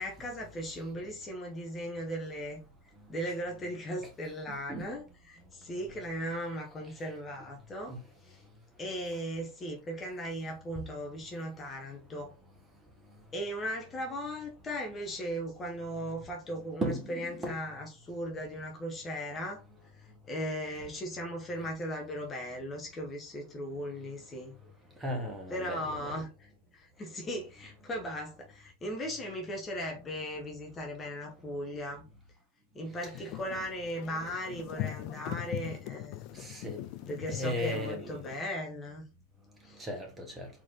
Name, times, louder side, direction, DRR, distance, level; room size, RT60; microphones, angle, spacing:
voice 1, 0.0-2.6 3.1-8.4 8.8-12.3 13.3-19.6 20.3-24.5 25.5-26.3 26.7-32.0 32.7-36.4 37.1-39.0 39.6-39.8, equal, 20° left, 0.9 m, -37 dB
voice 2, 16.8-17.6 25.0-26.2 33.0-33.3 36.3-36.8 37.3-38.3 39.8-40.5, equal, 15° right, 1.4 m, -36 dB
sound 1, 33.1-38.4, left 16 dB, 45° left, 0.4 m, -41 dB
4.1 x 3.0 x 3.8 m
figure-of-eight pair, 90°, 0 cm